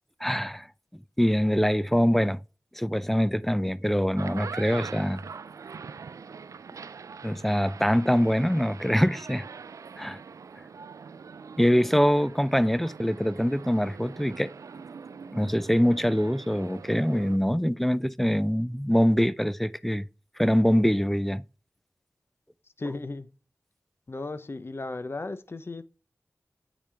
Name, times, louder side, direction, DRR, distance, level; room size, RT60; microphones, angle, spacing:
voice 1, 0.2-0.7 1.2-2.4 2.7-5.2 7.2-9.5 10.0-10.2 11.6-14.5 15.3-20.0 20.4-21.4, equal, 5° left, 0.4 m, -24 dB
sound 1, 4.0-17.4, right 5 dB, 80° right, 0.4 m, -43 dB
voice 2, 22.8-23.3 24.1-25.8, left 2 dB, 45° left, 0.8 m, -35 dB
8.8 x 5.2 x 3.4 m
wide cardioid pair, 60°, 5 cm